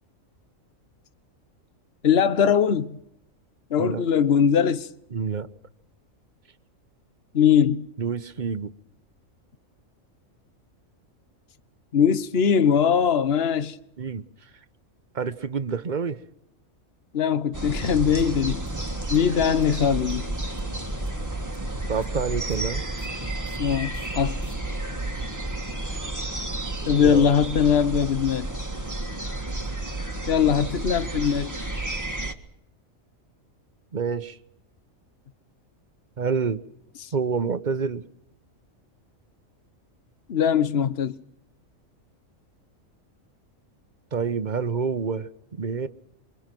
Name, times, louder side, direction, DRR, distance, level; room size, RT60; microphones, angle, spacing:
voice 1, 2.0-3.0 3.7-4.9 7.3-7.9 11.9-13.8 17.1-18.6 19.1-20.2 23.6-24.4 26.9-28.5 30.3-31.6 37.0-37.1 40.3-41.2, left 7 dB, 50° left, 1.2 m, -21 dB
voice 2, 5.1-5.5 8.0-8.7 14.0-14.2 15.1-16.2 21.9-22.8 26.8-27.3 33.9-34.4 36.2-36.6 37.1-38.0 44.1-45.3 45.6-45.9, right 5 dB, 40° right, 1.1 m, -27 dB
sound 1, 17.5-32.3, right 2 dB, 15° right, 1.7 m, -31 dB
sound 2, 17.8-24.5, equal, 5° left, 4.3 m, -39 dB
26.5 x 24.0 x 6.1 m
omnidirectional pair, 1.4 m